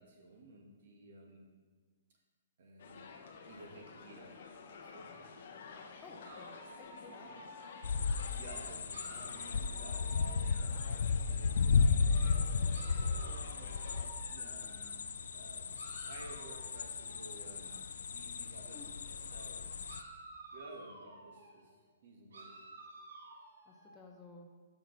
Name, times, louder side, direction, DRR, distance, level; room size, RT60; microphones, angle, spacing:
voice 1, 0.0-1.5 2.6-3.1 3.4-5.1 8.3-12.8 13.3-19.7 20.5-21.8 22.0-22.6, right 2 dB, 60° right, 1 dB, 1.5 m, -54 dB
sound 1, 2.8-14.1, left 5 dB, 60° left, 0.8 m, -51 dB
voice 2, 6.0-6.5 6.8-7.4 18.7-18.9 23.7-24.5, left 3 dB, 15° left, 1 dB, 0.7 m, -54 dB
sound 2, 6.2-8.3 8.9-11.0 12.0-14.9 15.8-17.7 19.3-19.5 19.8-21.6 22.3-24.0, right 2 dB, 85° right, 1.6 m, -53 dB
sound 3, 7.8-20.0, left 5 dB, 80° left, 0.3 m, -34 dB
6.5 x 5.9 x 4.0 m, 1.5 s
hypercardioid pair, 155°, 0 cm